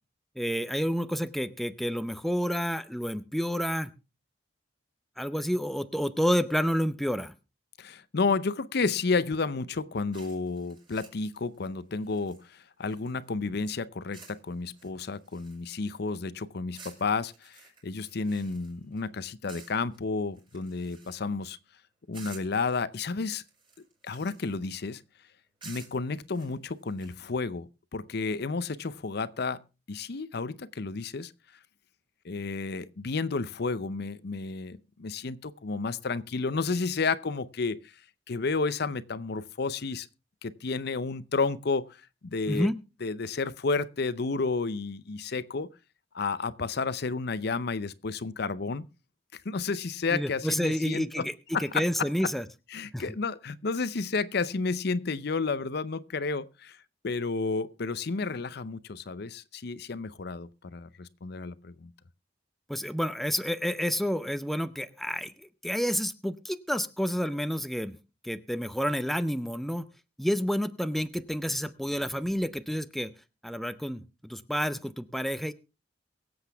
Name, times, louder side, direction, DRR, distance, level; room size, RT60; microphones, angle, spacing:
voice 1, 0.4-3.9 5.2-7.3 42.5-42.8 50.1-51.3 51.6-52.4 52.9-53.0 62.7-68.0 68.2-69.9 70.2-73.1 73.4-75.5, equal, ahead, 0.6 m, -29 dB
voice 2, 7.8-21.6 22.1-23.4 24.0-25.0 25.6-29.6 29.9-31.3 32.2-37.9 38.3-40.1 40.4-42.7 43.0-45.7 46.1-48.8 49.4-51.2 51.5-52.1 52.7-56.8 57.0-61.9, left 4 dB, 60° left, 0.6 m, -31 dB
sound 1, 10.1-13.3 14.1-14.4 14.7-15.9 16.7-19.1 19.5-20.0 20.3-21.4 22.1-22.7 23.4-24.6 25.6-27.2, right 4 dB, 30° right, 5.2 m, -52 dB
23.0 x 7.9 x 3.5 m
head